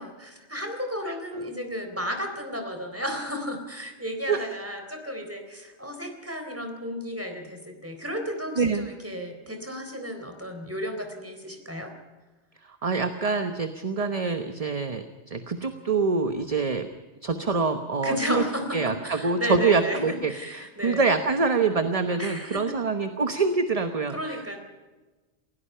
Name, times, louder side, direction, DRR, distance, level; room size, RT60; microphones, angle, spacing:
voice 1, 0.0-11.9 18.0-21.0 22.2-22.7 24.1-24.6, equal, 10° right, 4 dB, 3.8 m, -33 dB
voice 2, 1.1-1.5 4.3-4.5 8.6-8.9 12.8-16.9 17.2-18.4 18.7-24.6, right 4 dB, 35° right, 8 dB, 1.1 m, -26 dB
28.0 x 16.5 x 5.7 m, 1.2 s
omnidirectional pair, 1.2 m